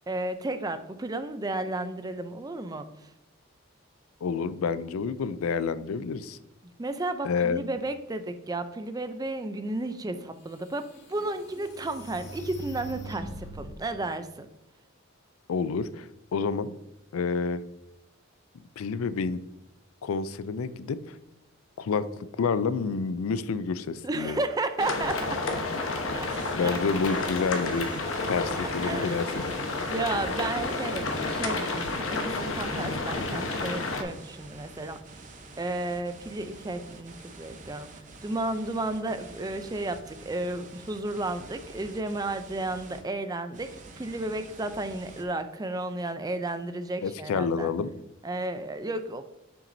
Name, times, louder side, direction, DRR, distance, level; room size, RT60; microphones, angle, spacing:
voice 1, 0.0-3.1 6.8-14.5 24.0-25.4 26.2-26.3 26.6-26.8 28.8-29.4 29.9-35.0 35.6-43.7 44.0-47.7 48.2-49.2, right 2 dB, 20° right, 10 dB, 0.4 m, -33 dB
voice 2, 4.2-6.4 7.2-7.6 15.5-16.7 17.1-17.6 18.8-19.4 20.0-21.2 21.8-22.1 22.4-24.4 26.5-27.9 28.3-29.3 47.0-48.0, left 5 dB, 90° left, 15 dB, 0.4 m, -29 dB
sound 1, 10.1-10.2 10.8-13.9, right 1 dB, 50° left, 1.9 m, -42 dB
sound 2, 24.8-34.0, left 3 dB, 70° left, 1.0 m, -30 dB
sound 3, 26.3-26.5 27.0-43.0 43.5-45.2, right 3 dB, 35° right, 0.8 m, -48 dB
7.1 x 5.8 x 2.6 m, 0.95 s
head